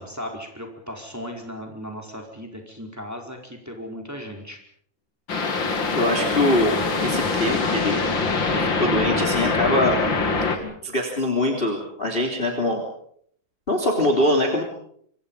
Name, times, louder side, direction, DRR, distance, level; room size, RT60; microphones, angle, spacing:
voice 1, 0.0-4.6, equal, 5° right, 2 dB, 4.4 m, -36 dB
sound 1, 5.3-10.6, left 4 dB, 40° left, 3.0 m, -23 dB
voice 2, 5.9-8.0 8.5-10.0 10.6-12.8 13.7-14.6, left 1 dB, 20° left, 2 dB, 3.3 m, -23 dB
27.0 x 25.0 x 5.6 m, 0.65 s
omnidirectional pair, 3.6 m